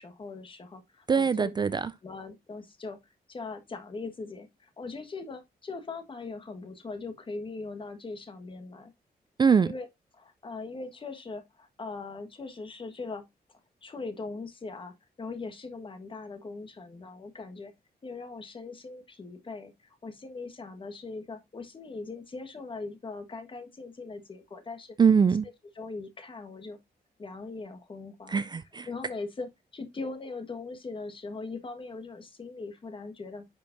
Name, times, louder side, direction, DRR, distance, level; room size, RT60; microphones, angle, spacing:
voice 1, 0.0-1.5 2.0-8.9 9.6-9.9 10.1-13.2 13.8-17.7 18.0-25.0 25.7-26.8 27.2-28.4 28.9-33.4, left 3 dB, 30° left, 1.4 m, -40 dB
voice 2, 1.1-1.9 9.4-9.7 25.0-25.5 28.3-28.9, right 6 dB, 25° right, 0.3 m, -23 dB
10.0 x 5.3 x 2.6 m
wide cardioid pair, 175°, 17 cm